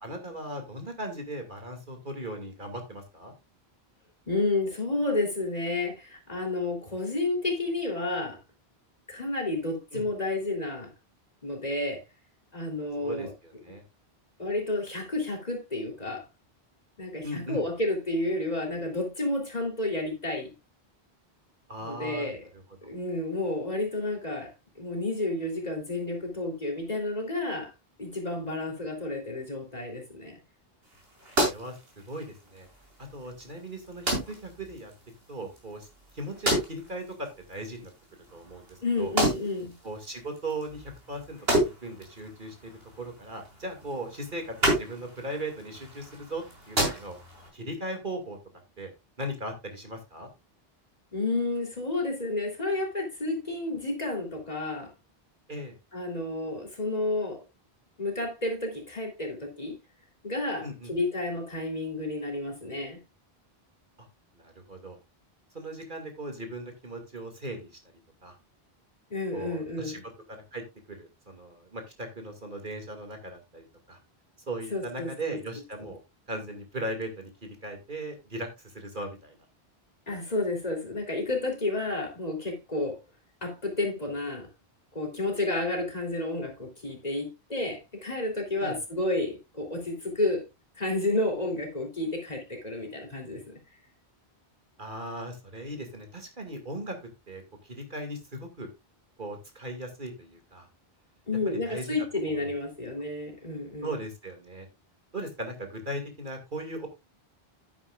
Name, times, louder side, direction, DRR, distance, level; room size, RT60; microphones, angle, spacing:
voice 1, 0.0-3.3 9.9-10.0 13.0-13.8 17.2-17.6 21.7-22.9 31.4-31.8 32.1-32.7 33.0-34.9 35.3-35.9 36.1-37.9 38.3-39.1 39.8-42.7 43.0-47.2 47.5-48.4 48.8-48.9 49.2-50.3 55.5-55.7 60.6-60.9 64.4-65.0 65.5-67.7 68.2-68.4 69.3-70.0 70.3-70.6 70.9-74.0 74.5-76.0 76.3-77.3 77.6-79.3 88.6-88.8 94.8-97.0 97.3-97.4 97.7-98.7 99.2-100.7 101.5-101.9 102.3-102.5 103.8-104.7 105.1-106.9, right 1 dB, 50° right, 2.6 m, -38 dB
voice 2, 4.3-8.4 9.1-10.9 11.4-12.0 12.5-13.3 14.4-16.3 17.0-20.5 21.8-22.4 22.9-24.5 24.8-27.7 28.0-30.3 38.8-39.7 51.1-54.9 55.9-57.4 58.0-59.8 60.2-63.0 69.1-70.0 74.7-75.4 75.8-75.9 80.1-83.0 83.4-84.5 84.9-90.4 90.8-93.4 101.3-103.9, left 2 dB, 40° left, 3.5 m, -31 dB
sound 1, 30.8-47.5, right 1 dB, 70° right, 4.9 m, -33 dB
11.0 x 10.0 x 2.4 m
omnidirectional pair, 1.1 m